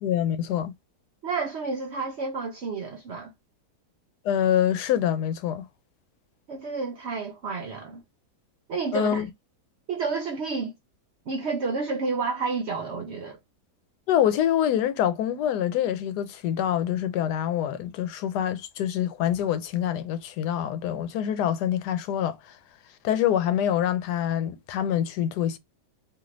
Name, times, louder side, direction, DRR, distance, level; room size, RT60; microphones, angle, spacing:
voice 1, 0.0-0.7 4.2-5.7 8.9-9.3 14.1-22.6 23.0-25.6, left 10 dB, 85° left, 1.2 m, -25 dB
voice 2, 1.2-3.3 6.5-8.0 8.7-9.2 9.9-10.7 11.3-13.4, right 4 dB, 70° right, 0.6 m, -30 dB
2.8 x 2.5 x 3.0 m
omnidirectional pair, 1.7 m